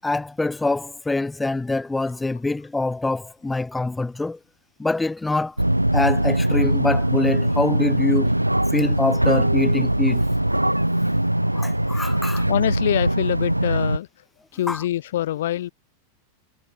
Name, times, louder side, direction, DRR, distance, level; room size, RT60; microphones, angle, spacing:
voice 1, 0.0-4.4 4.8-5.5 5.9-8.3 8.7-10.2 11.5-12.4 14.7-14.8, left 2 dB, 10° left, 7.8 m, -24 dB
sound 1, 5.6-14.0, right 1 dB, 85° right, 3.7 m, -21 dB
voice 2, 12.5-14.1 14.5-15.7, left 13 dB, 60° left, 6.5 m, -24 dB
figure-of-eight pair, 90°, 0 cm